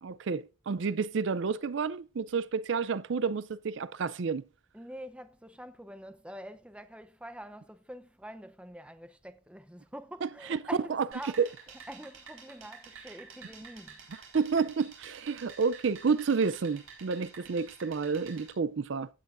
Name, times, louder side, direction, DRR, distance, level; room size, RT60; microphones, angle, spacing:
voice 1, 0.0-4.4 10.2-10.6 10.9-11.0 11.4-11.5 14.3-19.1, right 5 dB, 60° right, 0.4 m, -30 dB
voice 2, 4.7-11.5 11.9-14.0, equal, 5° right, 0.6 m, -45 dB
sound 1, 11.1-18.5, right 5 dB, 80° right, 4.2 m, -50 dB
15.5 x 8.9 x 2.5 m
head